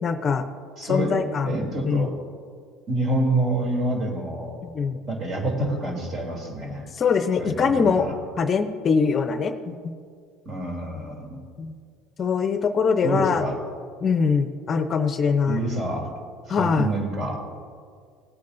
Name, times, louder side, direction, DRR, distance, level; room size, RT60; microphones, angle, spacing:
voice 1, 0.0-0.4 0.9-1.5 1.8-2.1 4.6-5.0 7.0-8.1 8.4-9.8 11.6-11.7 12.2-13.4 14.0-15.6 16.5-16.9, left 5 dB, 35° left, 9 dB, 0.7 m, -22 dB
voice 2, 0.8-1.2 1.4-2.1 2.9-4.6 5.1-6.8 7.4-8.2 10.4-11.4 13.0-13.6 15.5-16.1 16.5-17.4, right 1 dB, 40° right, 1 dB, 3.1 m, -27 dB
18.0 x 8.5 x 2.7 m, 2.1 s
supercardioid pair, 100°, 0 cm